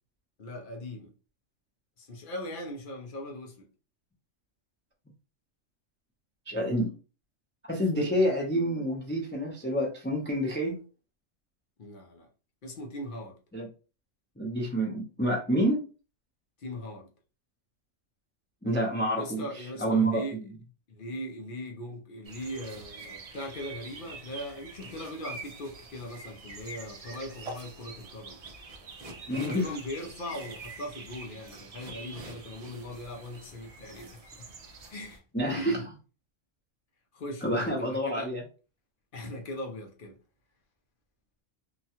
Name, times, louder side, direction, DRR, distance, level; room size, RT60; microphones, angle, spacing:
voice 1, 0.4-1.1 2.0-3.7 11.8-12.3 12.6-13.4 16.6-17.1 19.2-20.4 20.9-28.4 29.3-34.5 34.9-35.2 35.5-35.9 37.1-38.3 39.1-40.2, left 1 dB, 50° left, 0.7 m, -39 dB
voice 2, 6.5-7.0 7.6-10.8 13.5-13.7 14.4-15.8 18.6-20.2 29.3-29.7 35.3-35.8 37.4-38.4, equal, 15° left, 0.5 m, -28 dB
sound 1, 22.2-35.2, right 3 dB, 60° right, 0.4 m, -45 dB
2.9 x 2.3 x 2.8 m
omnidirectional pair, 1.4 m